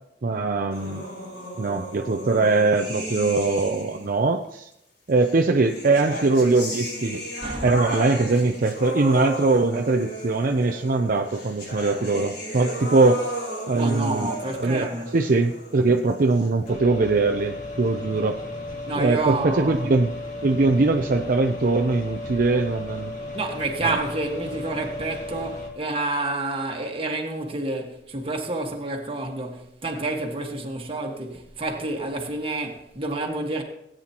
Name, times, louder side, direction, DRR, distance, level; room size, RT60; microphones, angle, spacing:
voice 1, 0.2-1.1 1.6-4.7 5.1-7.2 7.6-13.3 13.7-14.3 14.6-14.9 15.1-18.4 19.0-20.1 20.4-23.1 23.8-24.0, right 3 dB, 50° right, 0.5 m, -21 dB
sound 1, 0.7-4.2 5.2-16.7, equal, 70° left, 5.2 m, -35 dB
voice 2, 7.4-7.7 13.7-15.1 18.9-19.9 23.3-33.6, right 2 dB, 30° right, 1.6 m, -29 dB
sound 2, 16.7-25.7, left 2 dB, 45° left, 2.3 m, -35 dB
18.0 x 9.0 x 2.9 m
head